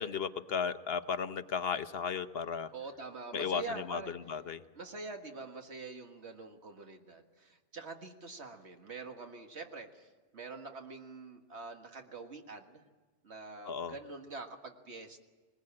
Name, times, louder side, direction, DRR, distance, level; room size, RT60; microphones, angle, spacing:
voice 1, 0.0-2.7 3.3-4.6 13.6-13.9, left 6 dB, 60° left, 11 dB, 1.0 m, -35 dB
voice 2, 2.7-4.1 4.8-10.1 10.3-12.8 13.2-15.2, right 3 dB, 70° right, 4 dB, 1.9 m, -45 dB
20.5 x 20.0 x 8.8 m, 1.3 s
omnidirectional pair, 1.2 m